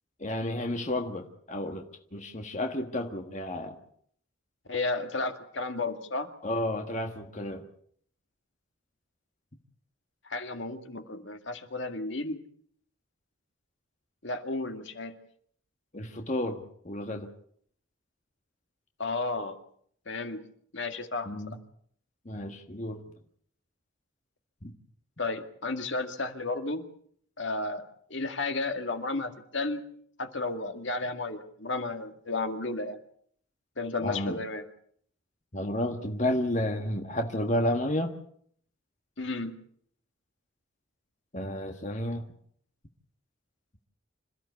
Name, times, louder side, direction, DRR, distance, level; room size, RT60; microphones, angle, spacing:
voice 1, 0.2-1.8 2.1-3.8 6.4-7.6 15.9-17.3 21.2-21.6 22.2-23.0 24.6-24.7 34.0-34.4 35.5-38.1 41.3-42.2, left 1 dB, 35° left, 4 dB, 1.6 m, -31 dB
voice 2, 4.7-6.3 10.3-12.4 14.2-15.1 19.0-19.5 20.1-20.4 20.7-21.6 25.2-26.8 27.4-27.8 28.1-29.8 30.2-33.0 33.8-34.6 39.2-39.6, left 3 dB, 65° left, 6 dB, 2.0 m, -33 dB
27.0 x 14.5 x 8.4 m, 0.63 s
head